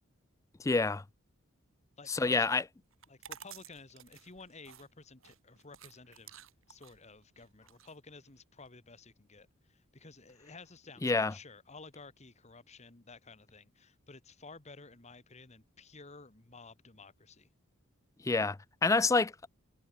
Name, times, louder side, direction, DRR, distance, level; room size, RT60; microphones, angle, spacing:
voice 1, 0.6-1.0 2.1-2.6 11.0-11.3 18.2-19.5, left 3 dB, 15° left, 0.3 m, -28 dB
voice 2, 2.0-2.5 3.1-17.5, left 3 dB, 35° left, 1.7 m, -53 dB
sound 1, 2.9-8.7, right 9 dB, 70° right, 5.2 m, -53 dB
head